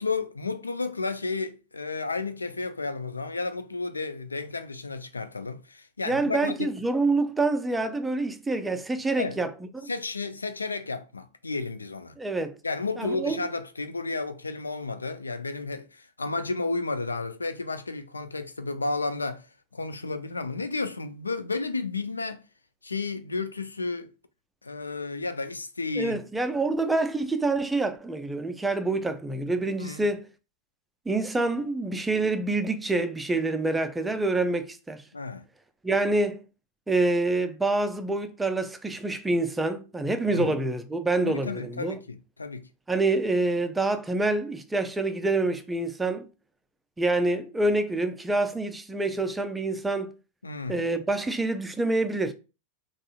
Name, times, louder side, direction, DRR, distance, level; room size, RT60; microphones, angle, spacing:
voice 1, 0.0-6.7 9.2-9.4 9.9-12.2 12.6-19.5 19.7-22.4 22.8-24.1 24.6-26.2 29.8-30.0 35.1-35.4 40.3-40.6 41.3-42.6 50.4-50.9, left 3 dB, 80° left, 0.3 m, -32 dB
voice 2, 6.1-9.9 12.2-12.6 13.0-13.4 26.0-30.3 31.1-35.0 35.8-36.4 36.9-42.0 42.9-46.3 47.0-50.1 50.7-52.3, right 2 dB, 10° right, 0.4 m, -26 dB
3.7 x 2.4 x 2.3 m
figure-of-eight pair, 90°, 0 cm